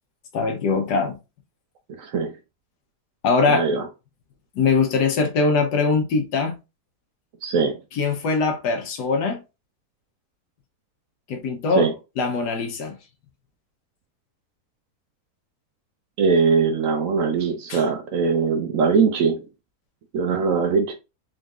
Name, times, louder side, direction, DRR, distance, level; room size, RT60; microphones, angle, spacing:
voice 1, 0.3-1.2 3.2-3.7 4.5-6.6 7.9-9.4 11.3-11.9 12.2-13.0 17.7-17.8, left 4 dB, 80° left, 1.5 m, -22 dB
voice 2, 2.0-2.3 3.5-3.8 7.4-7.8 11.8-11.9 16.2-19.4 20.1-20.9, right 5 dB, 65° right, 0.9 m, -21 dB
3.9 x 3.8 x 2.4 m
omnidirectional pair, 1.8 m